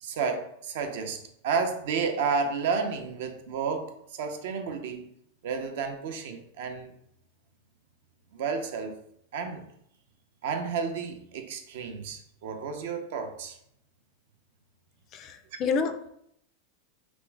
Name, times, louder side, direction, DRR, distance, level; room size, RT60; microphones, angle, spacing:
voice 1, 0.0-5.1 5.4-6.9 8.3-9.0 9.3-9.7 10.4-13.6, right 5 dB, 55° right, 6 dB, 0.6 m, -31 dB
voice 2, 15.1-16.1, left 5 dB, 25° left, 8 dB, 0.3 m, -29 dB
4.3 x 2.0 x 4.5 m, 0.73 s
supercardioid pair, 175°, 0 cm